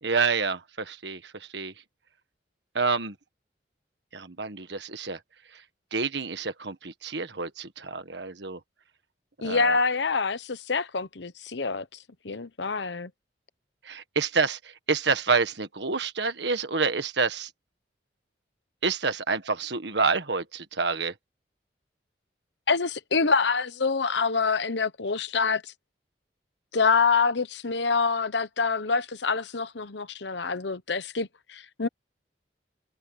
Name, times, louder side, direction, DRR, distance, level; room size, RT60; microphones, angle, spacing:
voice 1, 0.0-1.7 2.7-3.1 4.1-5.2 5.9-8.6 9.4-9.7 13.8-14.6 14.9-17.5 18.8-21.1, right 4 dB, 70° right, 1.6 m, -28 dB
voice 2, 9.4-11.8 12.2-13.1 22.7-25.6 26.7-31.9, left 4 dB, 75° left, 1.0 m, -26 dB
head